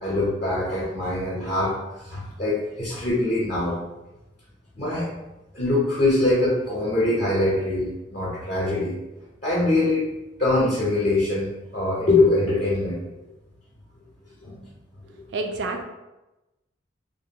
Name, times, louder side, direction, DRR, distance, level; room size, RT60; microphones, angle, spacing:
voice 1, 0.0-1.7 2.0-3.8 4.8-5.1 5.5-8.9 9.4-10.0 10.4-13.0 14.4-14.6 15.0-15.1, left 2 dB, 40° left, -7 dB, 0.6 m, -23 dB
voice 2, 15.3-15.8, right 3 dB, 60° right, 3 dB, 0.4 m, -28 dB
2.4 x 2.2 x 2.7 m, 1.0 s
head